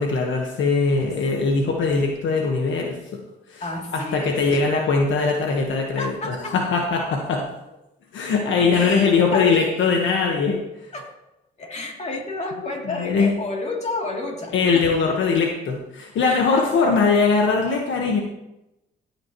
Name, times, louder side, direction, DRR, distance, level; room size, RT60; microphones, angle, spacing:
voice 1, 0.0-3.0 3.5-3.6 3.9-7.5 8.1-10.6 13.0-13.3 14.5-18.2, left 4 dB, 70° left, 1 dB, 1.4 m, -21 dB
voice 2, 3.6-4.7 6.0-6.6 8.7-9.8 10.9-11.1 11.6-14.9 16.2-16.7 17.7-17.8, left 2 dB, 35° left, 0 dB, 2.9 m, -31 dB
16.0 x 8.7 x 3.1 m, 0.92 s
cardioid pair, 90°, 20 cm